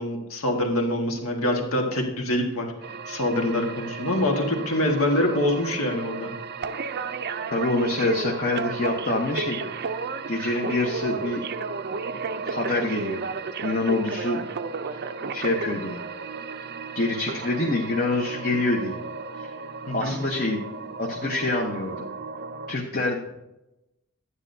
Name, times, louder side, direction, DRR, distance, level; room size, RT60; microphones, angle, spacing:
voice 1, 0.0-2.7 3.1-6.3 19.9-20.1, left 1 dB, 70° left, 2 dB, 1.7 m, -25 dB
sound 1, 2.8-22.8, right 4 dB, 45° right, 0.5 m, -33 dB
voice 2, 7.5-9.9 10.3-11.5 12.4-13.2 13.6-14.4 14.9-15.0 15.3-16.0 16.9-19.0 19.3-19.5 19.9-20.6 21.0-22.1 22.7-23.4, left 2 dB, 40° left, 0 dB, 1.0 m, -26 dB
11.0 x 9.7 x 2.7 m, 0.93 s
head